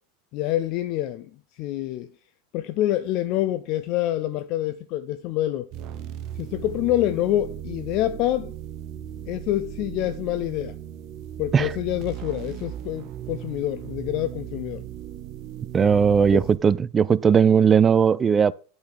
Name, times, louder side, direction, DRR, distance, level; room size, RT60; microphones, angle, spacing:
voice 1, 0.3-1.3 1.6-2.1 2.5-5.7 6.4-8.5 9.3-10.7 11.4-14.8 16.3-16.5, left 14 dB, 50° left, 0.5 m, -26 dB
sound 1, 5.7-16.6, right 11 dB, 45° right, 0.7 m, -37 dB
voice 2, 15.7-18.5, right 7 dB, 20° right, 0.3 m, -18 dB
8.5 x 4.2 x 6.2 m
supercardioid pair, 130°, 0 cm